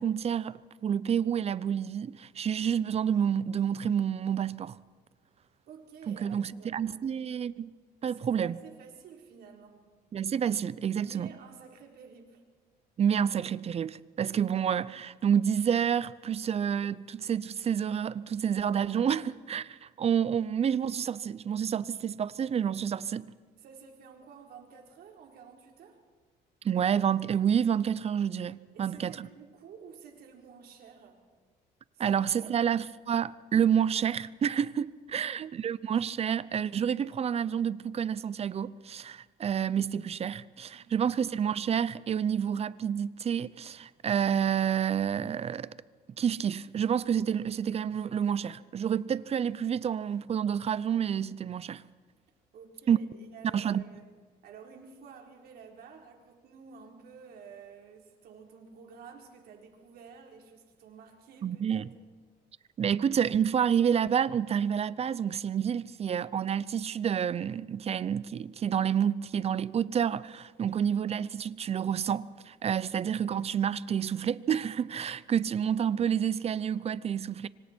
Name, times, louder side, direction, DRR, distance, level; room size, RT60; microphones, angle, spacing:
voice 1, 0.0-4.7 6.1-7.7 8.0-8.6 10.1-11.3 13.0-23.3 26.6-29.3 32.0-45.7 46.2-51.8 52.9-53.0 53.5-53.8 61.4-61.9 62.8-77.5, right 8 dB, 40° right, 0.7 m, -29 dB
voice 2, 5.7-6.8 8.0-9.8 11.0-12.4 23.5-26.0 28.7-31.3 31.9-32.7 35.1-35.3 40.7-41.0 52.5-54.0 54.4-61.8, right 6 dB, 65° right, 4.3 m, -51 dB
26.0 x 25.0 x 4.6 m
cardioid pair, 110°, 17 cm